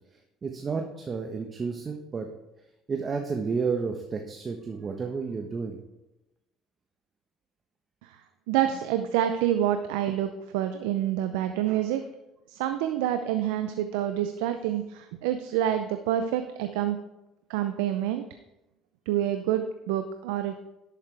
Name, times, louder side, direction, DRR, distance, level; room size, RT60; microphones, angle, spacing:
voice 1, 0.4-2.3 2.9-5.8, right 5 dB, 35° right, 3 dB, 1.2 m, -31 dB
voice 2, 8.5-12.0 12.5-17.0 17.5-18.2 19.1-20.6, right 11 dB, 80° right, 8 dB, 0.6 m, -27 dB
11.0 x 8.6 x 3.5 m, 0.94 s
hypercardioid pair, 70°, 0 cm